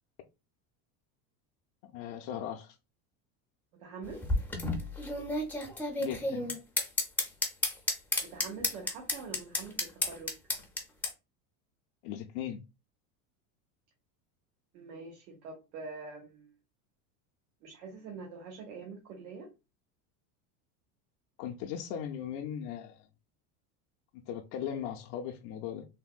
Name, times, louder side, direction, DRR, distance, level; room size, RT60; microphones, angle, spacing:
voice 1, 1.8-2.8 6.0-6.5 12.0-12.6 21.4-23.1 24.1-25.9, left 9 dB, 65° left, 0.5 m, -38 dB
voice 2, 3.7-4.2 8.2-10.4 14.7-16.5 17.6-19.5, right 4 dB, 90° right, 1.0 m, -45 dB
sound 1, 4.0-11.1, left 2 dB, 5° left, 0.4 m, -31 dB
3.4 x 2.1 x 2.3 m
supercardioid pair, 135°, 40 cm